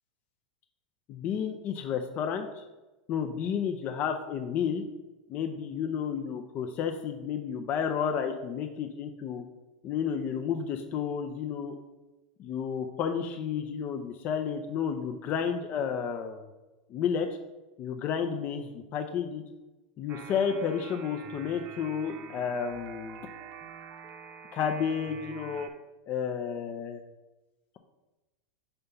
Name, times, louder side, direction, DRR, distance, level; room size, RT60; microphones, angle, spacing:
voice 1, 1.1-2.6 3.1-4.8 5.3-9.4 9.8-11.8 12.4-16.5 16.9-17.3 17.8-19.4 20.0-23.2 24.5-25.7 26.1-27.0, left 7 dB, 40° left, 5 dB, 0.5 m, -31 dB
sound 1, 20.1-25.7, right 6 dB, 35° right, 0.7 m, -46 dB
5.6 x 3.4 x 5.4 m, 1.1 s
hypercardioid pair, 110°, 4 cm